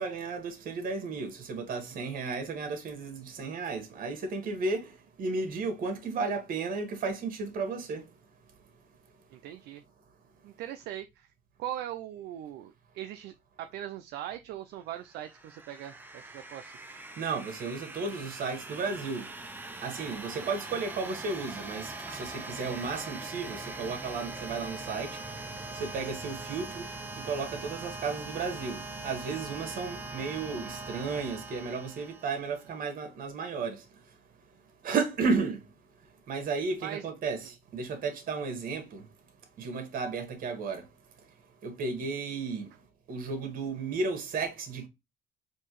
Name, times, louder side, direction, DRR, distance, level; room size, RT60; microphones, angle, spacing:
voice 1, 0.0-4.8 5.2-8.0 17.2-19.2 19.8-25.1 25.8-26.8 27.2-33.8 34.8-35.6 36.3-39.0 39.6-40.8 41.6-42.6 43.1-44.9, right 4 dB, 55° right, 1.4 m, -33 dB
voice 2, 9.3-9.8 10.4-11.3 11.6-16.8 36.8-37.1, right 12 dB, 75° right, 0.4 m, -40 dB
sound 1, 15.0-32.7, right 2 dB, 10° right, 0.5 m, -42 dB
4.5 x 2.8 x 3.0 m
cardioid pair, 110°, 17 cm